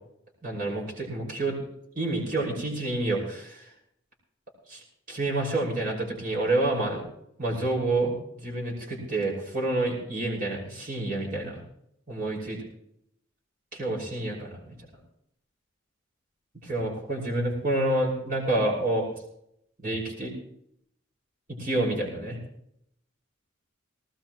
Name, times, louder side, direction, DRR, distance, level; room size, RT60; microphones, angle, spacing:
voice 1, 0.4-1.6 1.9-3.7 4.7-4.8 5.1-7.0 7.4-11.6 12.1-12.6 13.7-14.8 16.6-19.1 19.8-20.3 21.5-22.4, right 2 dB, 45° right, -3 dB, 5.9 m, -28 dB
19.0 x 18.5 x 3.1 m, 0.73 s
head